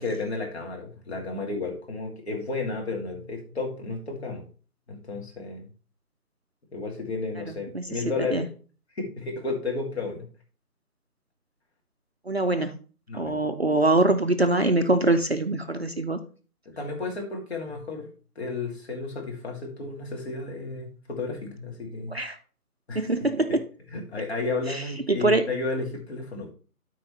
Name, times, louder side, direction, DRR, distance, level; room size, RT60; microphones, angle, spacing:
voice 1, 0.0-4.4 4.9-5.7 6.7-8.5 9.0-10.3 13.1-13.4 16.8-18.1 18.4-22.2 22.9-23.1 23.9-26.5, left 3 dB, 45° left, 0 dB, 2.4 m, -32 dB
voice 2, 7.5-7.8 8.3-8.5 12.3-12.7 13.2-16.2 22.1-22.4 22.9-23.6 24.7-24.8 25.1-25.4, right 2 dB, 45° right, 8 dB, 0.5 m, -23 dB
13.0 x 4.5 x 3.2 m, 0.38 s
figure-of-eight pair, 160°, 46 cm